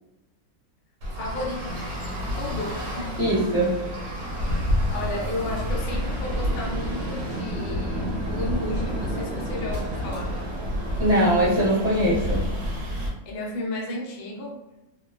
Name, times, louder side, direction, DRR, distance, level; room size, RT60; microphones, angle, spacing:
Traffic noise roadway noise, 1.0-13.1, equal, 70° right, 1.2 m, -29 dB
voice 1, 1.1-3.3 4.9-10.4 13.3-14.6, left 1 dB, 90° left, -1 dB, 0.4 m, -33 dB
voice 2, 3.2-3.8 11.0-12.5, right 1 dB, 10° right, -11 dB, 0.7 m, -21 dB
3.0 x 2.2 x 2.3 m, 0.93 s
omnidirectional pair, 1.7 m